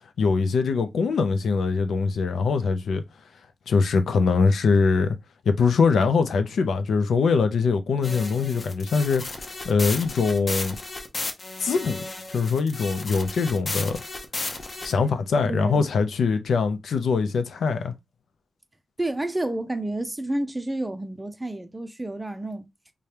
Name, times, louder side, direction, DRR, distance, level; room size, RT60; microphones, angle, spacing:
voice 1, 0.2-3.0 3.7-5.2 5.5-9.2 9.6-10.8 11.6-12.0 12.3-14.0 14.8-17.9, left 5 dB, 80° left, 0.6 m, -22 dB
sound 1, 8.0-14.9, left 2 dB, 30° left, 0.7 m, -34 dB
voice 2, 15.4-15.8 19.0-22.7, right 1 dB, 10° right, 0.4 m, -30 dB
4.9 x 2.2 x 2.9 m
wide cardioid pair, 170°, 0 cm